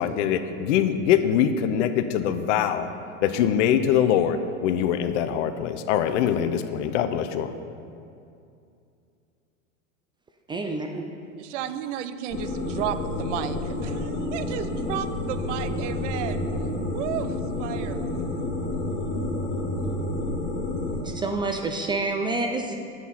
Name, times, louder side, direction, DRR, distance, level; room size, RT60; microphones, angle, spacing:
voice 1, 0.0-2.9 3.2-7.5, left 9 dB, 60° left, 10 dB, 0.7 m, -23 dB
voice 2, 10.5-11.1 21.0-22.8, right 3 dB, 10° right, 3 dB, 0.3 m, -28 dB
voice 3, 11.4-16.5 16.9-18.0, right 10 dB, 60° right, 12 dB, 0.6 m, -33 dB
sound 1, 12.3-21.0, left 1 dB, 25° left, 2.0 m, -29 dB
9.1 x 7.5 x 4.1 m, 2.5 s
hypercardioid pair, 100°, 41 cm